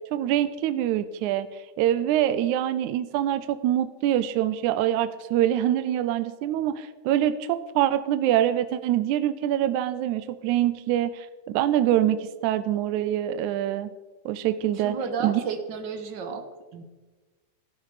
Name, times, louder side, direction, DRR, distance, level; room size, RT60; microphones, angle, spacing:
voice 1, 0.1-13.9 14.3-15.0 15.2-15.4, right 11 dB, 80° right, 12 dB, 1.9 m, -25 dB
voice 2, 14.7-16.5 16.7-16.8, right 5 dB, 55° right, 7 dB, 1.3 m, -32 dB
15.0 x 12.5 x 4.9 m, 1.2 s
omnidirectional pair, 3.6 m